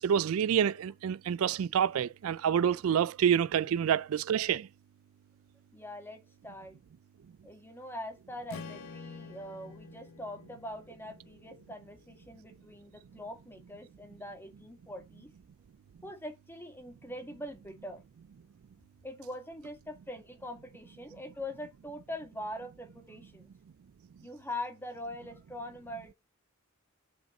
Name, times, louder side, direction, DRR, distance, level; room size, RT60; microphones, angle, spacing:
voice 1, 0.0-4.7, right 8 dB, 80° right, 0.3 m, -27 dB
voice 2, 5.7-6.8 7.4-15.3 16.0-18.0 18.8-23.5 24.2-26.1, left 1 dB, 10° left, 1.9 m, -43 dB
Strum, 8.5-12.8, left 4 dB, 75° left, 0.7 m, -49 dB
5.5 x 5.3 x 5.3 m
head